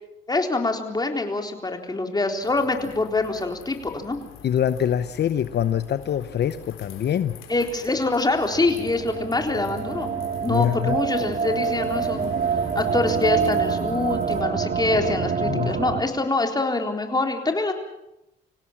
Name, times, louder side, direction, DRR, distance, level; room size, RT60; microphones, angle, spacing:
voice 1, 0.3-4.2 7.5-10.1 10.4-17.7, left 2 dB, 20° left, 4 dB, 3.9 m, -25 dB
sound 1, 2.4-14.4, left 8 dB, 85° left, 3.8 m, -45 dB
voice 2, 4.4-7.4 10.5-11.0 15.4-15.7, left 9 dB, 60° left, 12 dB, 0.9 m, -24 dB
sound 2, 8.5-16.0, right 6 dB, 45° right, 2.0 m, -26 dB
26.0 x 17.0 x 7.4 m, 0.88 s
cardioid pair, 90°, 20 cm